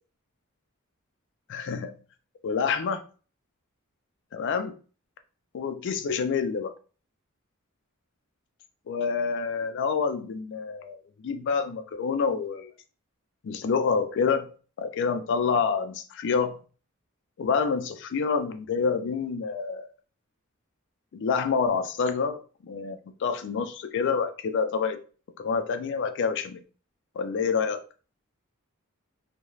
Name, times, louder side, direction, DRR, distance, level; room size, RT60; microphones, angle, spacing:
voice 1, 1.5-1.9 2.4-3.0 4.3-4.8 5.5-6.7 8.9-12.7 13.4-14.5 14.8-16.6 17.4-19.9 21.1-25.0 25.4-26.6 27.2-27.8, left 5 dB, 55° left, 9 dB, 0.3 m, -27 dB
2.3 x 2.1 x 3.0 m, 0.38 s
head